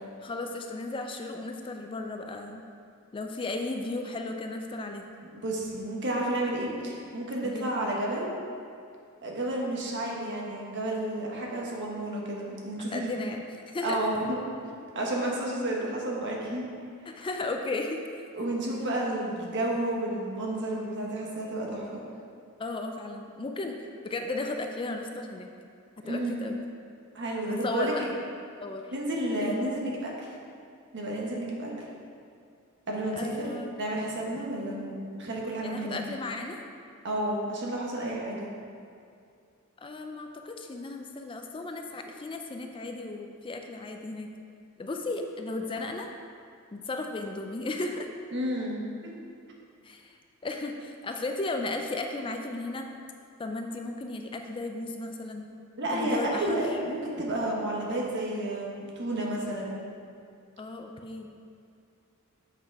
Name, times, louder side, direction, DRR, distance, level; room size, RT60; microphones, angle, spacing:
voice 1, 0.2-2.6 3.1-5.0 7.4-7.7 12.9-14.0 17.1-18.0 22.6-23.8 24.0-25.5 26.1-26.6 27.5-28.1 28.6-28.9 29.4-29.6 33.2-33.8 35.6-36.6 39.8-44.3 44.8-46.1 46.7-48.1 49.8-52.9 53.4-55.5 55.9-56.8 60.6-61.3, left 2 dB, 25° left, 4 dB, 0.4 m, -35 dB
voice 2, 5.4-8.3 9.2-13.1 13.8-14.4 14.9-16.7 18.3-22.0 26.0-26.4 27.1-28.1 28.9-30.3 30.9-31.7 32.9-33.5 33.8-36.0 37.0-38.5 48.3-49.2 55.8-59.8, right 1 dB, 55° right, -2 dB, 1.4 m, -31 dB
7.4 x 5.8 x 4.6 m, 2.4 s
head